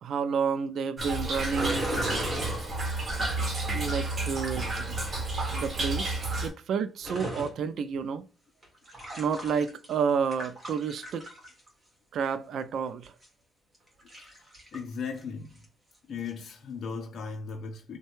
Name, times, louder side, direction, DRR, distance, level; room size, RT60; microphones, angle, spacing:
voice 1, 0.0-1.9 3.7-5.0 5.5-8.2 9.2-11.2 12.1-13.1, right 6 dB, 65° right, 0.3 m, -30 dB
Toilet flush / Trickle dribble, 1.0-6.5, right 2 dB, 40° right, 1.0 m, -31 dB
sound 1, 1.5-3.1 7.0-7.5 8.6-10.0 10.3-11.7 13.0-13.3 13.9-14.8 15.2-15.3 15.6-15.7 16.3-16.5, right 1 dB, 20° right, 1.5 m, -36 dB
voice 2, 14.7-15.6 16.1-18.0, left 5 dB, 60° left, 0.5 m, -37 dB
3.2 x 2.1 x 3.0 m
cardioid pair, 115°, 0 cm